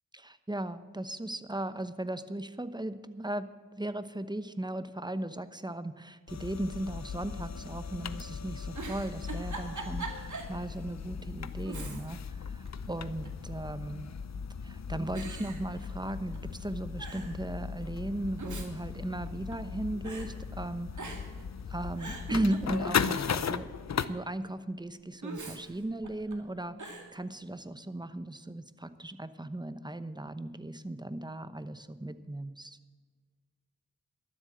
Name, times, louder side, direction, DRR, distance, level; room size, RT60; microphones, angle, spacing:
voice 1, 0.1-3.5 3.8-14.1 14.6-21.2 21.7-23.7 24.1-32.8, right 1 dB, 10° right, 12 dB, 0.9 m, -37 dB
sound 1, 6.3-24.1, left 6 dB, 50° left, 0.7 m, -37 dB
Giggle, 8.7-10.6 11.0-11.1 11.6-12.3 12.7-13.5 14.2-14.6 15.1-16.4 16.6-16.7 17.0-17.4 18.2-19.7 20.0-20.3 20.9-21.4 21.8-23.2 25.2-26.3 26.8-27.1, right 3 dB, 60° right, 2.3 m, -42 dB
12.5 x 7.7 x 7.8 m, 1.5 s
cardioid pair, 45°, 34 cm